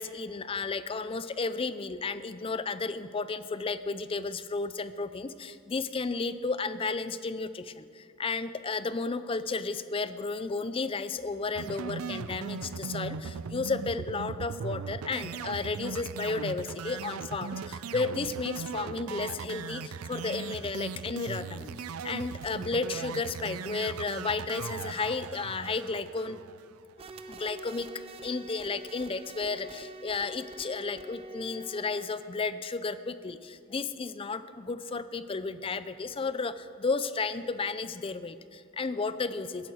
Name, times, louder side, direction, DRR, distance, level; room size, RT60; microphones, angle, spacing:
voice 1, 0.0-7.8 8.2-19.8 20.1-21.7 22.0-26.4 27.3-27.9 28.2-39.7, left 4 dB, 25° left, 14 dB, 0.4 m, -33 dB
sound 1, 11.5-26.9, right 6 dB, 85° right, 0.4 m, -39 dB
sound 2, 27.0-32.4, right 1 dB, 25° right, 0.5 m, -46 dB
15.5 x 10.5 x 6.3 m, 2.3 s
head